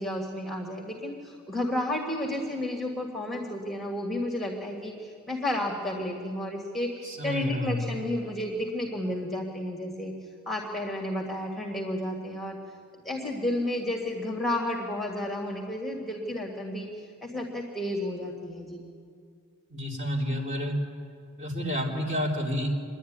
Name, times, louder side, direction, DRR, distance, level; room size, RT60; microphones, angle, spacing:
voice 1, 0.0-6.9 7.2-10.1 10.5-12.6 13.0-18.8, left 1 dB, ahead, -1 dB, 1.8 m, -32 dB
voice 2, 7.0-7.8 19.7-20.7 21.4-22.7, equal, 30° right, -3 dB, 3.6 m, -30 dB
25.5 x 11.0 x 9.5 m, 2.2 s
head